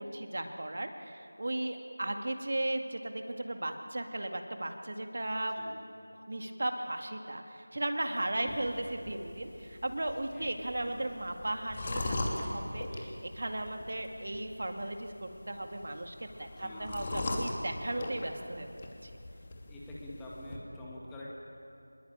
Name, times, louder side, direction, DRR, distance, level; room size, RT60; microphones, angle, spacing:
voice 1, 0.0-5.5 6.3-19.1, right 1 dB, 50° right, 5 dB, 2.1 m, -36 dB
voice 2, 8.4-8.8 10.3-11.1 16.6-17.1 19.7-21.3, left 1 dB, 5° left, -5 dB, 2.1 m, -46 dB
sound 1, 8.5-20.6, left 1 dB, 25° left, 2.7 m, -40 dB
27.0 x 21.0 x 9.0 m, 2.7 s
figure-of-eight pair, 170°, 0 cm